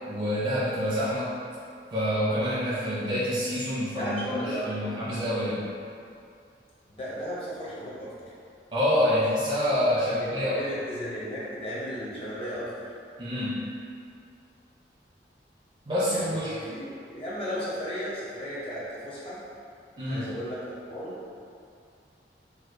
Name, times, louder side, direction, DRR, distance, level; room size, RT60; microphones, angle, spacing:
voice 1, 0.1-1.3 1.9-5.7 8.7-10.6 13.2-13.7 15.9-16.6 20.0-20.3, equal, 30° right, -8 dB, 0.4 m, -27 dB
voice 2, 4.0-5.0 6.9-8.1 10.1-12.9 16.1-19.4 20.1-21.2, equal, 30° left, -7 dB, 0.7 m, -35 dB
4.2 x 2.2 x 2.5 m, 2.4 s
head